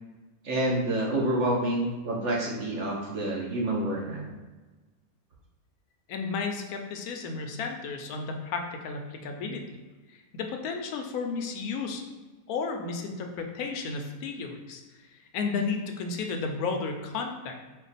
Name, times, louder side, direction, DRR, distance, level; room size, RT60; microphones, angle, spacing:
voice 1, 0.4-4.3, right 1 dB, 55° right, -2 dB, 1.0 m, -28 dB
voice 2, 6.1-9.8 10.1-12.0 12.5-14.8 15.3-17.6, left 4 dB, 75° left, 4 dB, 1.0 m, -33 dB
4.3 x 2.3 x 4.0 m, 1.2 s
omnidirectional pair, 1.6 m